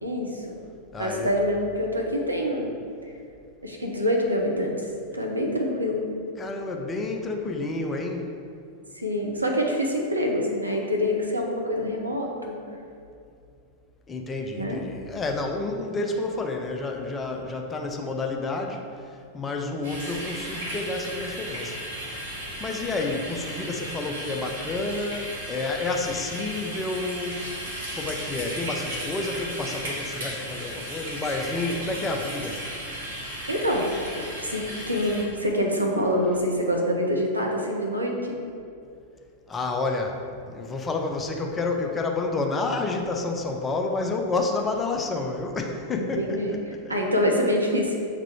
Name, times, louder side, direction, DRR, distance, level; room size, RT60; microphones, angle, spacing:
voice 1, 0.0-0.6 1.0-2.7 3.6-4.8 5.1-6.0 9.0-12.6 14.6-14.8 33.5-33.9 34.1-38.4 46.0-46.5 46.9-48.0, equal, 80° right, 1 dB, 0.7 m, -26 dB
voice 2, 0.9-1.3 6.4-8.3 14.1-22.3 22.6-27.6 27.9-32.6 39.5-46.9, left 3 dB, 20° left, 2 dB, 0.6 m, -30 dB
sound 1, 19.8-35.2, right 1 dB, 60° right, 1.3 m, -35 dB
7.4 x 3.7 x 3.4 m, 2.4 s
figure-of-eight pair, 90°, 0 cm